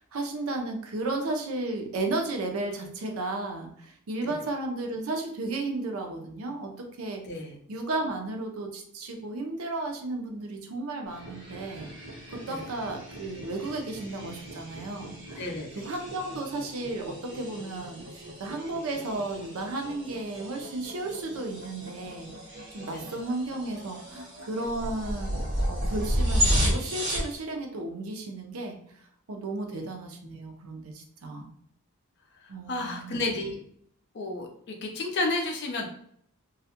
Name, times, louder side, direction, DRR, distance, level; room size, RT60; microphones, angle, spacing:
voice 1, 0.0-6.7 7.0-7.2 7.7-11.9 12.3-22.3 22.7-28.8 29.3-31.5 32.5-33.3, right 2 dB, 75° right, 3 dB, 0.5 m, -34 dB
voice 2, 7.2-7.6 12.5-12.6 15.4-15.8 22.9-23.0 32.4-33.6 34.1-35.9, left 2 dB, 50° left, 2 dB, 0.5 m, -32 dB
sound 1, 11.1-27.4, equal, 55° right, 0.9 m, -33 dB
2.3 x 2.1 x 2.8 m, 0.66 s
head